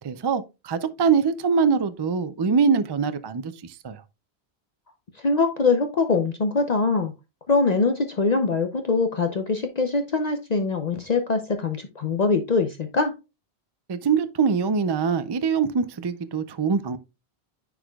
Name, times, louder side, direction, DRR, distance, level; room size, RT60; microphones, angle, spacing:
voice 1, 0.0-4.0 13.9-17.0, right 6 dB, 45° right, 0.3 m, -23 dB
voice 2, 5.2-7.1 7.5-13.1, left 4 dB, 45° left, 0.7 m, -23 dB
9.9 x 4.8 x 2.3 m
omnidirectional pair, 1.0 m